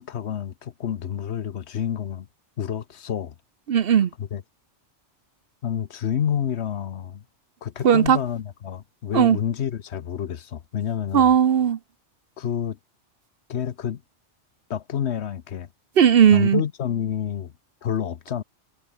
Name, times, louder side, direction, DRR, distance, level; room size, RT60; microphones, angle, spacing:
voice 1, 0.0-2.3 2.6-3.4 4.2-4.4 5.6-7.2 7.6-11.4 12.4-12.8 13.5-14.0 14.7-15.7 16.3-17.5 17.8-18.4, left 9 dB, 70° left, 1.1 m, -28 dB
voice 2, 3.7-4.1 7.8-8.2 9.1-9.4 11.1-11.8 16.0-16.6, right 8 dB, 60° right, 0.9 m, -17 dB
omnidirectional pair, 1.2 m